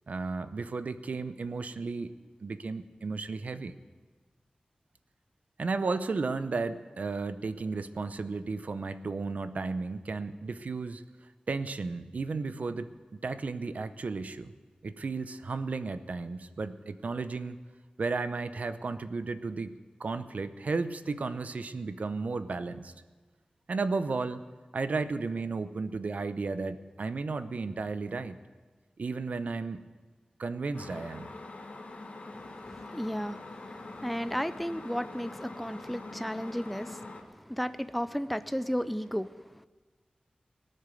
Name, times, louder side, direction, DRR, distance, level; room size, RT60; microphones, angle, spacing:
voice 1, 0.1-2.1 2.4-3.7 5.6-11.0 11.5-12.9 13.2-14.5 14.8-17.6 18.0-22.9 23.7-24.4 24.7-28.4 29.0-29.8 30.4-31.3, right 4 dB, 70° right, 11 dB, 0.7 m, -34 dB
sound 1, 30.7-37.2, left 2 dB, 55° left, 1.5 m, -44 dB
voice 2, 32.3-39.7, equal, ahead, 13 dB, 0.4 m, -34 dB
18.5 x 6.6 x 9.0 m, 1.3 s
wide cardioid pair, 95°, 3 cm